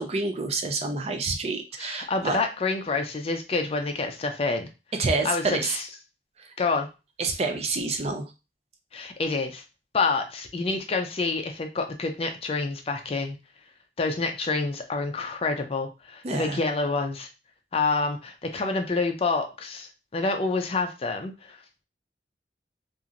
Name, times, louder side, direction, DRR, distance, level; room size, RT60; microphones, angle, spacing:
voice 1, 0.0-2.4 5.0-5.8 6.4-6.5 7.2-8.2 16.2-16.6, right 3 dB, 35° right, 5 dB, 0.4 m, -28 dB
voice 2, 1.8-4.7 5.2-5.8 6.6-6.9 8.9-9.6 9.9-13.4 14.0-17.3 17.7-21.6, left 3 dB, 35° left, 5 dB, 0.4 m, -28 dB
2.9 x 2.5 x 2.5 m, 0.29 s
head